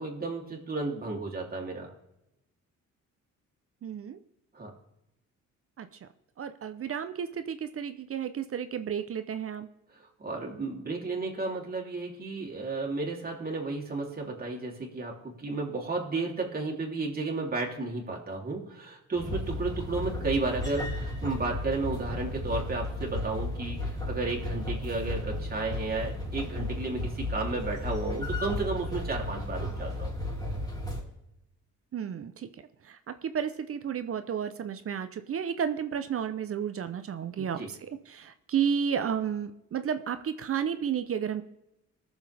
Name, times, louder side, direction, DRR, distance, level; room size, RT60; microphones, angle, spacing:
voice 1, 0.0-1.9 4.5-4.7 9.9-30.1 37.4-37.7, right 3 dB, 30° right, -1 dB, 3.3 m, -33 dB
voice 2, 3.8-4.2 5.8-6.1 6.4-9.7 31.9-32.5 32.8-37.8 38.1-41.4, right 8 dB, 50° right, 10 dB, 0.8 m, -32 dB
sound 1, 19.2-31.0, left 1 dB, 15° left, 3.6 m, -34 dB
21.0 x 7.2 x 3.5 m, 0.87 s
cardioid pair, 90°, 30 cm